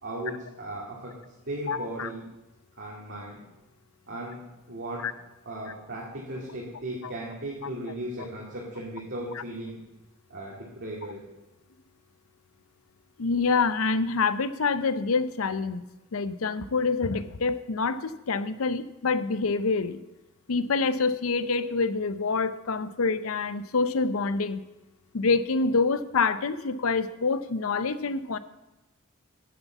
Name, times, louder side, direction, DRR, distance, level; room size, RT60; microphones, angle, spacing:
voice 1, 0.0-1.1 1.5-2.3 2.8-3.4 4.1-4.4 4.7-5.1 5.5-9.8 10.3-11.2, right 1 dB, 60° right, -4 dB, 2.3 m, -36 dB
voice 2, 1.7-2.1 5.0-5.1 7.0-7.1 13.2-15.8 16.1-20.0 20.5-24.6 25.1-28.4, left 4 dB, 80° left, 14 dB, 0.6 m, -26 dB
9.6 x 7.2 x 7.1 m, 1.0 s
head